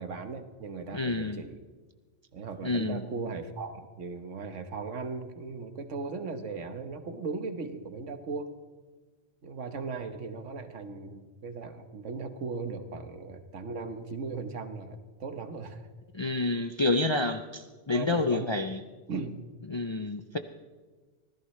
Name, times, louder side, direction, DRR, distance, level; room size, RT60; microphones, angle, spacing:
voice 1, 0.0-1.6 2.3-8.5 9.4-15.8 17.9-18.5 19.1-19.4, right 4 dB, 85° right, 8 dB, 1.5 m, -37 dB
voice 2, 0.9-1.4 2.6-3.0 16.1-18.8 19.7-20.4, left 2 dB, 40° left, 7 dB, 0.4 m, -28 dB
24.5 x 16.0 x 3.2 m, 1.4 s
omnidirectional pair, 1.2 m